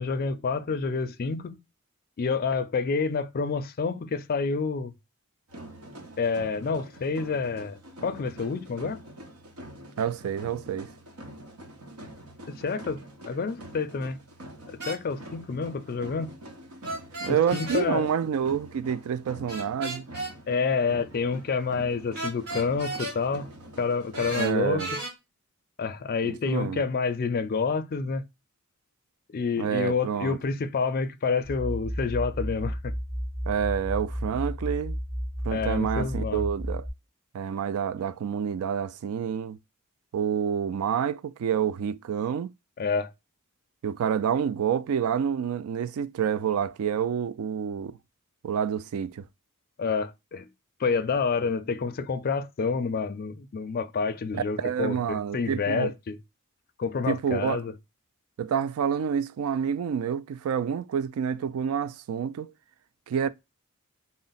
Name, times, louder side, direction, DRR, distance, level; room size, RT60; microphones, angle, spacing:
voice 1, 0.0-1.6 2.2-4.9 6.2-9.0 12.5-14.2 14.7-16.3 17.3-18.1 20.5-23.5 23.8-24.8 25.8-28.2 29.3-32.9 35.5-36.4 42.8-43.1 49.8-50.5 50.8-56.2 56.8-57.7, left 5 dB, 40° left, 0.4 m, -28 dB
sound 1, 5.5-24.4, right 1 dB, 85° right, 0.9 m, -45 dB
voice 2, 10.0-10.9 17.2-20.1 24.4-24.9 26.2-26.8 29.6-30.4 33.5-35.0 35.4-36.9 37.3-39.6 40.1-42.5 43.8-48.0 48.4-49.2 54.3-55.9 57.1-57.6 58.4-62.5 63.1-63.3, right 8 dB, 65° right, 0.3 m, -28 dB
sound 2, 14.8-15.0 16.8-17.8 19.5-20.3 22.1-23.2 24.1-25.1, right 2 dB, 50° right, 1.9 m, -34 dB
sound 3, 31.4-36.9, equal, 30° right, 1.9 m, -32 dB
3.8 x 2.0 x 3.9 m
head